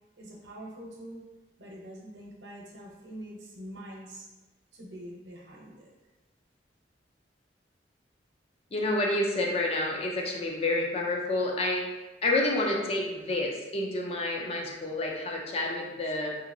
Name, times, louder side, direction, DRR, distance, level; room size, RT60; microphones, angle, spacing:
voice 1, 0.2-1.2 1.6-4.3 4.7-5.9, right 1 dB, 90° right, -3 dB, 0.8 m, -44 dB
voice 2, 8.7-11.9 12.2-16.4, left 2 dB, 35° left, 0 dB, 0.4 m, -29 dB
2.8 x 2.7 x 2.6 m, 1.1 s
head